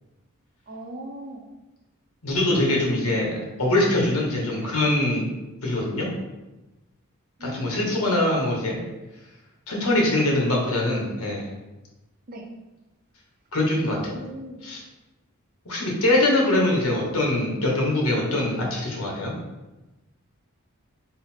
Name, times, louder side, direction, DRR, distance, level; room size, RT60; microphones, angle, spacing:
voice 1, 0.7-1.4 4.6-4.7 7.4-8.2 12.3-12.4 13.9-14.6, right 1 dB, 40° right, 1 dB, 0.6 m, -39 dB
voice 2, 2.2-5.3 5.6-6.1 7.4-8.8 9.7-11.5 13.5-14.1 14.6-14.8 15.6-19.4, left 1 dB, 75° left, -2 dB, 1.0 m, -23 dB
3.9 x 2.0 x 4.2 m, 1.1 s
head